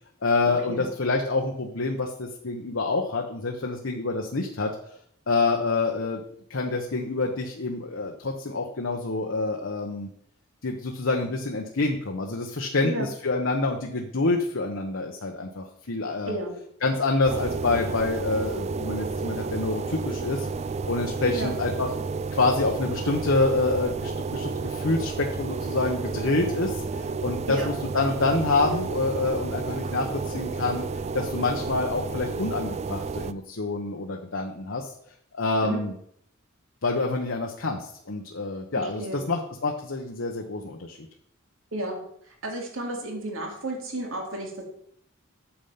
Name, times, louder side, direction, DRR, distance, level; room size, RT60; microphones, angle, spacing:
voice 1, 0.2-4.7 5.3-6.2 6.5-10.1 10.6-16.4 16.8-20.5 20.9-21.9 22.3-30.8 31.1-34.9 35.3-35.9 36.8-41.0, left 3 dB, 65° left, 2 dB, 1.0 m, -27 dB
voice 2, 16.3-16.6 21.3-21.5 27.5-27.7 35.6-35.8 38.8-39.2 41.7-42.0 42.4-44.6, right 1 dB, 70° right, 1 dB, 2.6 m, -32 dB
sound 1, 17.2-33.3, right 4 dB, 30° right, 0.3 m, -31 dB
8.7 x 7.2 x 5.7 m, 0.68 s
head